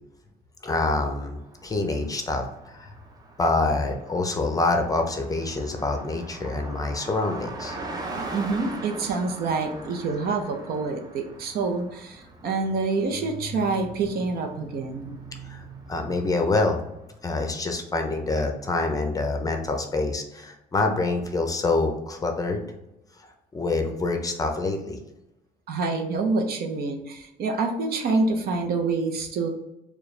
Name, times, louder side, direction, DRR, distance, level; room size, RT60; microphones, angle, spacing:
voice 1, 0.6-2.9 3.4-7.8 15.4-15.6 15.9-16.8 17.2-22.6 23.5-25.0, left 3 dB, 20° left, 4 dB, 0.6 m, -26 dB
Car passing by, 1.3-17.4, right 2 dB, 25° right, 0.6 m, -41 dB
voice 2, 8.3-15.2 25.7-29.5, right 3 dB, 65° right, 4 dB, 0.7 m, -27 dB
4.6 x 2.3 x 3.2 m, 0.90 s
cardioid pair, 110°, 17 cm